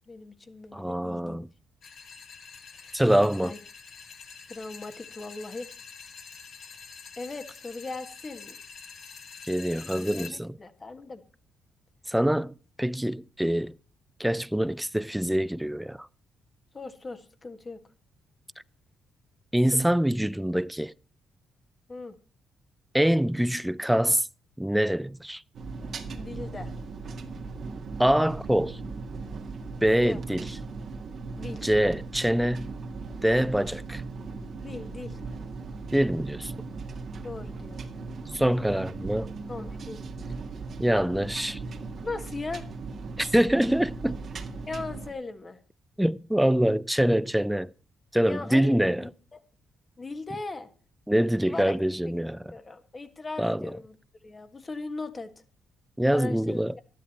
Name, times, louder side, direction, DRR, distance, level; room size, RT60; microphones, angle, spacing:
voice 1, 0.1-1.4 2.7-3.0 3.4-3.6 4.5-5.7 7.2-8.6 10.0-11.2 16.7-17.8 21.9-22.1 26.1-26.7 30.0-30.2 31.4-31.6 34.6-35.2 37.2-37.9 39.5-40.1 42.0-42.7 44.7-45.6 48.2-49.4 50.0-50.7 51.5-51.8 52.1-52.2 52.5-53.9 54.2-55.3 56.1-56.8, left 3 dB, 30° left, 1.7 m, -38 dB
voice 2, 0.7-1.5 2.9-3.5 9.4-10.6 12.1-13.8 14.2-16.1 19.5-20.9 22.9-24.3 24.6-25.4 28.0-28.8 29.8-30.5 31.6-32.7 33.2-34.0 35.9-36.5 38.3-39.3 40.8-41.6 43.2-44.2 46.0-47.7 48.1-49.0 51.1-52.5 53.4-53.7 56.0-56.7, equal, 5° right, 0.5 m, -25 dB
sound 1, 1.8-10.3, left 6 dB, 65° left, 2.6 m, -46 dB
sound 2, 25.5-45.1, right 3 dB, 50° right, 1.8 m, -38 dB
12.5 x 11.0 x 4.3 m
cardioid pair, 90°, 0 cm